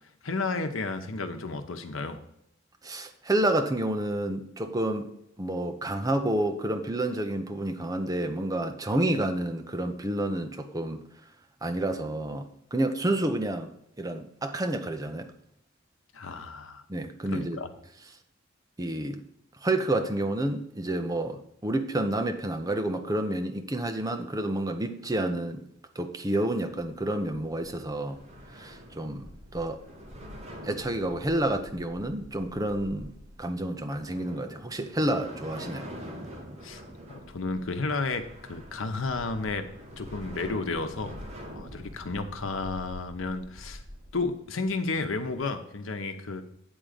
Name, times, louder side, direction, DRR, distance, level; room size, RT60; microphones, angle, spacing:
voice 1, 0.2-2.2 16.1-16.8 17.3-17.7 36.6-36.8 37.3-39.7 40.0-41.2 41.5-43.8 44.1-46.4, left 3 dB, 85° left, 0.9 m, -32 dB
voice 2, 2.8-5.1 5.4-11.0 11.6-13.7 14.0-15.3 16.9-17.6 18.8-19.2 19.6-25.6 26.0-28.2 28.5-29.8 30.6-35.9, right 1 dB, 20° right, 0.8 m, -29 dB
sound 1, 27.0-45.4, equal, 35° right, 1.7 m, -45 dB
9.0 x 3.8 x 6.7 m
head